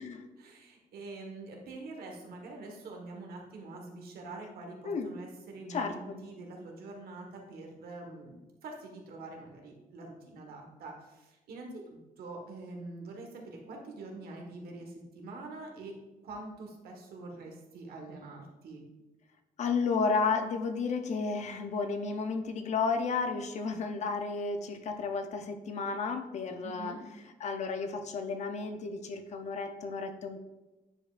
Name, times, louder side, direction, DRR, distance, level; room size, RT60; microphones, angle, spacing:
voice 1, 0.4-8.4 8.6-16.0 16.2-18.8 26.6-27.0, right 2 dB, 85° right, 1 dB, 1.4 m, -45 dB
voice 2, 5.7-6.2 19.6-27.0 27.4-30.4, left 4 dB, 50° left, 7 dB, 0.6 m, -32 dB
9.6 x 5.0 x 2.5 m, 1.1 s
cardioid pair, 170°, 15 cm